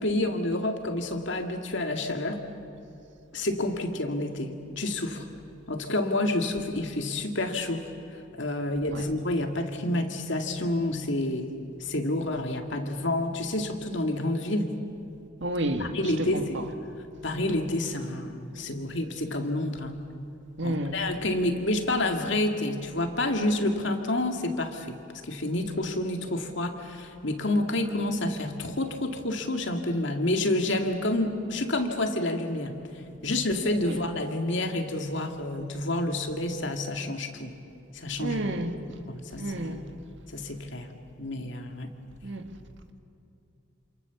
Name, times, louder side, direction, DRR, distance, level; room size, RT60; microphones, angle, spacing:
voice 1, 0.0-2.4 3.3-5.3 5.7-14.7 15.8-16.6 17.2-20.0 20.6-32.8 33.2-37.5 37.9-38.4 39.1-39.8 40.3-40.9 41.2-41.9, left 1 dB, 60° left, 2.3 m, -29 dB
voice 2, 15.4-15.9 16.2-16.6 20.6-21.0 33.8-34.0 38.2-38.8 39.4-39.9 42.2-42.5, right 1 dB, 60° right, 1.8 m, -31 dB
28.0 x 27.0 x 7.2 m
head